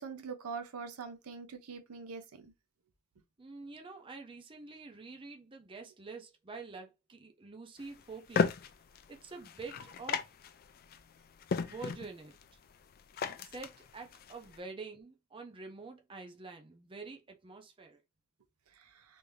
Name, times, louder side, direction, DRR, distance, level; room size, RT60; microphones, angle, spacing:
voice 1, 0.0-2.5, right 5 dB, 85° right, 0.7 m, -43 dB
voice 2, 3.4-8.5 9.1-10.2 11.7-12.3 13.4-18.0, right 4 dB, 25° right, 0.5 m, -47 dB
sound 1, 7.8-14.6, left 5 dB, 45° left, 0.4 m, -37 dB
3.5 x 2.6 x 3.1 m
head